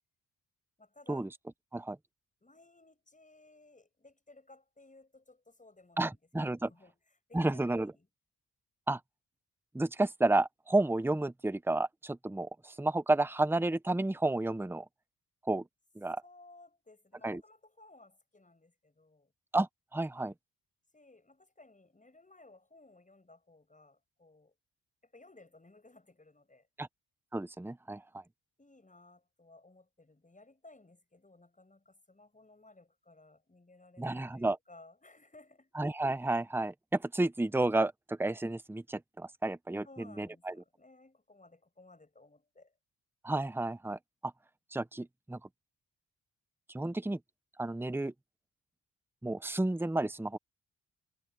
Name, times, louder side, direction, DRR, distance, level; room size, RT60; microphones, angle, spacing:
voice 1, 0.8-1.3 2.4-6.2 6.6-7.0 7.3-8.1 16.2-19.3 20.9-24.5 25.0-26.7 28.6-35.7 39.8-42.7, left 2 dB, 20° left, 6.3 m, -59 dB
voice 2, 6.0-6.7 7.3-7.9 8.9-9.0 9.7-14.8 15.5-15.6 16.0-16.2 17.2-17.4 19.5-20.3 26.8-26.9 27.3-28.2 34.0-34.6 35.8-39.8 40.2-40.5 43.2-44.3 44.7-45.4 46.7-47.2 47.6-48.1 49.2-50.4, right 2 dB, 5° right, 0.9 m, -31 dB
cardioid pair, 65°, 37 cm